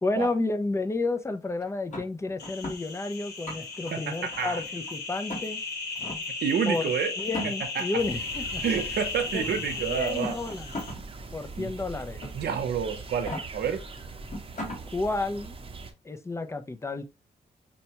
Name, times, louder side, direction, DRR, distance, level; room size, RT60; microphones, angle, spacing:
voice 1, 0.0-5.6 6.7-6.8 7.2-8.6 9.3-9.6 9.9-10.7 11.3-12.2 14.9-15.6 16.0-17.0, left 3 dB, 15° left, 0.5 m, -31 dB
sound 1, 1.9-2.8 3.3-3.9 4.3-4.9 5.3-5.5 6.0-6.2 7.2-7.8 8.9-9.0 10.0-11.0 11.4-11.5 12.2-12.6 13.1-13.4 14.0-14.1 14.3-14.8, left 1 dB, 45° left, 1.6 m, -36 dB
sound 2, 2.4-10.9, left 4 dB, 90° left, 1.0 m, -36 dB
voice 2, 3.9-4.6 6.4-7.1 7.4-7.9 8.6-10.4 11.6-11.7 12.3-13.8, right 7 dB, 85° right, 0.7 m, -29 dB
sound 3, 8.0-15.9, right 3 dB, 35° right, 0.7 m, -41 dB
5.4 x 2.2 x 2.9 m
cardioid pair, 100°, 17 cm